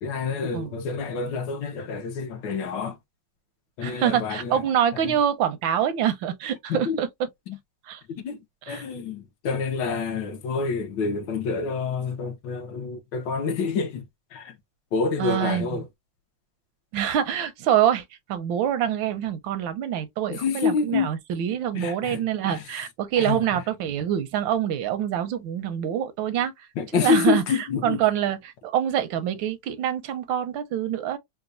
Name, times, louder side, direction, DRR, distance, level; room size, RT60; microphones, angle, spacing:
voice 1, 0.0-3.0 3.8-4.6 5.0-5.1 6.7-7.0 7.5-7.6 8.1-8.4 8.7-14.0 14.3-14.6 14.9-15.9 20.3-21.1 21.7-22.6 23.2-23.4 26.8-28.0, left 5 dB, 75° left, 1.4 m, -27 dB
voice 2, 3.8-7.1 7.8-8.0 8.7-8.8 15.2-15.8 16.9-26.7 26.9-31.2, right 10 dB, 85° right, 1.4 m, -25 dB
4.0 x 2.2 x 2.5 m
omnidirectional pair, 2.1 m